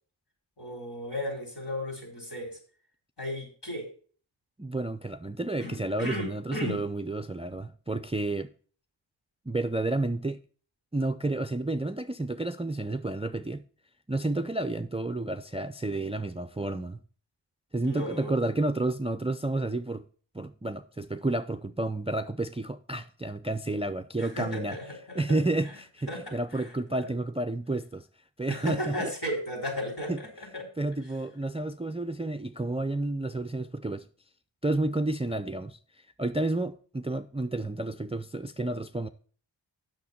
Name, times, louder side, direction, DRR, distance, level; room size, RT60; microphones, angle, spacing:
voice 1, 0.6-2.6 3.2-3.9 5.6-6.9 17.8-18.3 24.2-25.2 25.7-25.8 26.1-26.2 26.6-26.7 26.9-27.1 28.5-30.6, left 1 dB, 55° left, 4.8 m, -35 dB
voice 2, 4.6-8.5 9.5-10.4 10.9-13.6 14.1-17.0 17.7-20.0 20.3-24.8 25.2-28.1 28.4-29.1 30.1-30.2 30.8-34.1 34.6-35.8 36.2-39.1, right 2 dB, 15° right, 0.4 m, -30 dB
8.7 x 6.6 x 5.6 m
wide cardioid pair, 60°, 47 cm